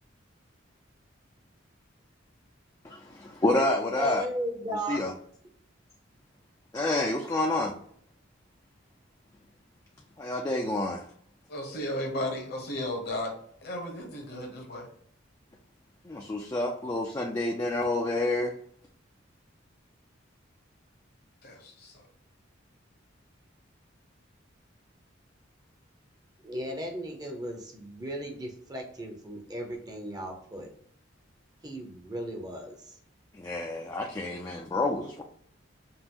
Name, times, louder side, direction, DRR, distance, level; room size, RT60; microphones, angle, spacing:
voice 1, 2.8-4.2 4.9-5.1 6.7-7.7 10.2-11.0 16.0-18.5 33.3-35.2, left 2 dB, 20° left, 0 dB, 0.4 m, -28 dB
voice 2, 4.0-5.0 26.4-30.7 31.6-32.9, equal, 20° right, 3 dB, 0.7 m, -36 dB
voice 3, 11.5-13.3 13.6-14.9 21.4-22.0, left 1 dB, 50° left, 2 dB, 1.1 m, -34 dB
5.3 x 2.5 x 2.9 m, 0.63 s
head